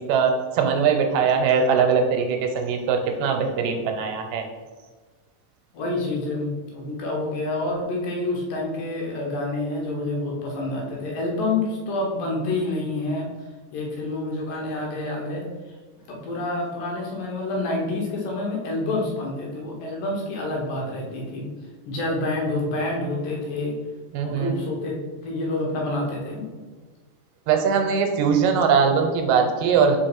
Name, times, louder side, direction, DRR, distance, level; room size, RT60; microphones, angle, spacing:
voice 1, 0.0-4.5 24.1-24.5 27.5-30.0, right 6 dB, 90° right, 5 dB, 2.3 m, -21 dB
voice 2, 5.7-13.3 13.7-15.4 16.1-21.5 21.9-23.8 24.2-25.0 25.2-26.4, left 2 dB, 80° left, -2 dB, 2.9 m, -28 dB
5.0 x 4.6 x 4.5 m, 1.4 s
omnidirectional pair, 3.9 m